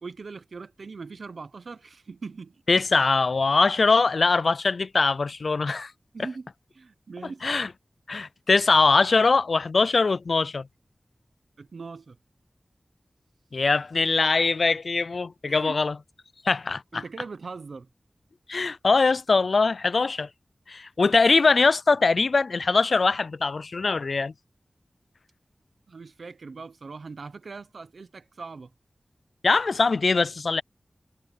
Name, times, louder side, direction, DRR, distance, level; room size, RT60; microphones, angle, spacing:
voice 1, 0.0-2.6 6.1-6.5 6.7-7.4 11.6-12.2 15.5-15.8 16.9-17.9 25.9-28.7, right 4 dB, 85° right, 0.8 m, -40 dB
voice 2, 2.7-5.9 7.4-7.7 8.1-10.7 13.5-16.0 16.4-17.0 18.5-20.3 20.7-24.3 29.4-30.6, left 4 dB, 70° left, 0.4 m, -22 dB
wide cardioid pair, 80°, 0 cm